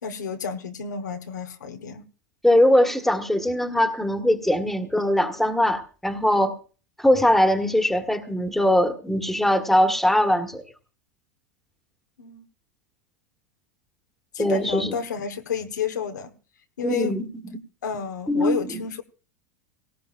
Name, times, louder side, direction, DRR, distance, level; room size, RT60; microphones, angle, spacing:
voice 1, 0.0-2.0 12.2-12.4 14.3-16.3 16.8-17.2 17.8-19.0, left 6 dB, 90° left, 6 dB, 1.2 m, -30 dB
voice 2, 2.4-6.6 7.0-10.6 14.4-14.9 16.8-17.6 18.3-18.8, left 1 dB, ahead, 6 dB, 1.5 m, -21 dB
18.0 x 17.0 x 2.5 m, 0.37 s
hypercardioid pair, 105°, 9 cm